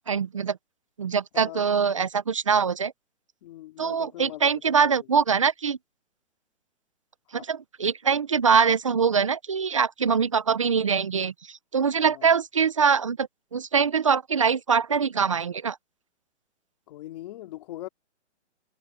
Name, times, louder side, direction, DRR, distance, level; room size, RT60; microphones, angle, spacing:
voice 1, 0.1-0.6 1.0-2.9 3.8-5.8 7.5-11.3 11.7-15.8, right 6 dB, 30° right, 0.4 m, -23 dB
voice 2, 1.3-2.0 3.4-5.1 7.4-7.5 12.0-12.3 16.9-17.9, left 15 dB, 35° left, 3.8 m, -42 dB
hypercardioid pair, 165°, 35 cm